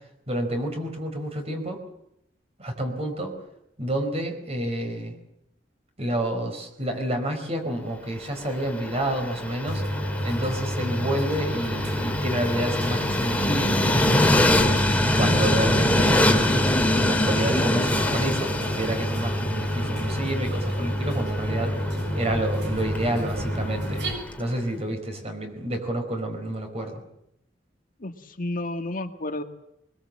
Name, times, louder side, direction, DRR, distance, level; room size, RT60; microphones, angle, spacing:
voice 1, 0.3-1.8 2.6-3.3 3.8-5.1 6.0-9.8 10.2-14.7 15.2-21.8 22.1-24.0 24.4-27.0, right 1 dB, 35° right, 4 dB, 4.7 m, -29 dB
Train, 8.4-24.5, left 1 dB, 10° left, 2.4 m, -25 dB
sound 1, 9.7-24.1, equal, 70° right, 7.3 m, -29 dB
voice 2, 28.0-29.4, left 2 dB, 50° left, 6 dB, 1.9 m, -31 dB
23.0 x 22.0 x 7.7 m, 0.78 s
head